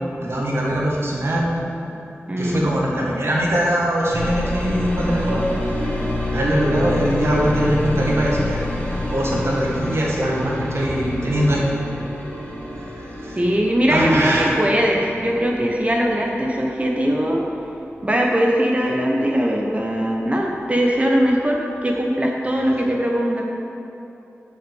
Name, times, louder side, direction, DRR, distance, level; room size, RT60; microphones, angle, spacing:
voice 1, 0.1-1.9 2.4-5.5 5.8-5.9 6.3-8.6 9.1-11.6 12.8-13.4 13.9-14.5, equal, 60° right, -4 dB, 1.7 m, -22 dB
voice 2, 2.3-2.7 13.4-17.4 18.0-23.4, equal, 30° right, -1 dB, 1.0 m, -20 dB
sound 1, 4.1-19.9 20.2-21.0, left 1 dB, 30° left, 2.0 m, -29 dB
7.1 x 5.9 x 7.0 m, 2.9 s
wide cardioid pair, 65°, 5 cm